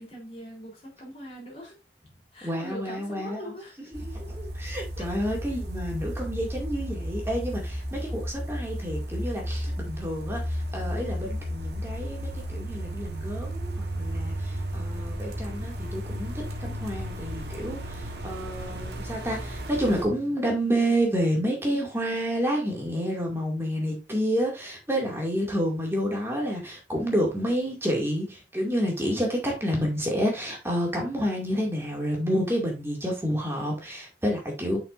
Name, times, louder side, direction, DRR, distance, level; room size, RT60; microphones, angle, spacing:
voice 1, 0.0-1.7 2.3-3.8 5.0-5.1 7.4-7.6, equal, 35° left, 3.6 m, -41 dB
voice 2, 2.4-3.5 3.9-34.8, equal, 15° right, 2.2 m, -29 dB
sound 1, 3.9-20.0, equal, 65° right, 1.3 m, -34 dB
7.5 x 6.1 x 2.6 m
head